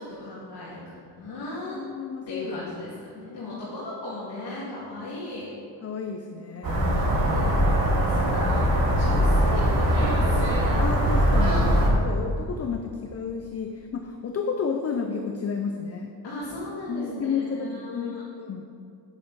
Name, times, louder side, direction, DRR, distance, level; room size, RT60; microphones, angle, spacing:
voice 1, 0.0-1.8 2.3-5.5 6.9-10.6 16.2-18.2, left 2 dB, 70° left, -8 dB, 2.3 m, -37 dB
voice 2, 1.7-2.6 3.5-3.6 5.8-7.1 10.8-16.1 16.9-18.6, left 5 dB, 35° left, 4 dB, 0.5 m, -31 dB
sound 1, 6.6-11.9, equal, 55° right, 2.2 m, -21 dB
9.2 x 8.8 x 4.1 m, 2.5 s
wide cardioid pair, 155°, 42 cm